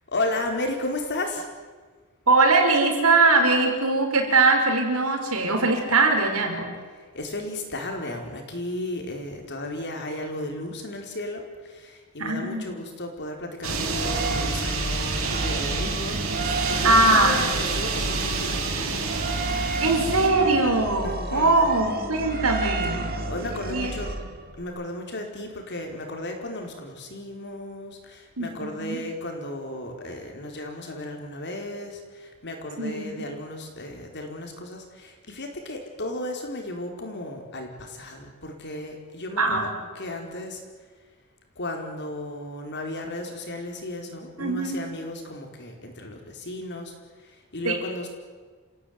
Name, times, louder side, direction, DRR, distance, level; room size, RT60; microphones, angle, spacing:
voice 1, 0.1-1.5 6.7-18.8 21.0-21.8 22.9-24.2 24.5-40.6 41.5-48.1, left 1 dB, 55° left, 3 dB, 4.7 m, -34 dB
voice 2, 2.3-6.7 12.2-12.7 16.8-17.4 19.8-23.1 23.7-23.9 28.4-29.0 32.8-33.3 39.4-39.7 44.4-44.8 47.6-47.8, right 3 dB, 90° right, 3 dB, 5.4 m, -21 dB
sound 1, 13.6-20.3, right 4 dB, 70° right, 5.1 m, -29 dB
sound 2, 13.7-24.6, right 2 dB, 45° right, 2.3 m, -31 dB
29.0 x 16.0 x 9.7 m, 1.5 s
head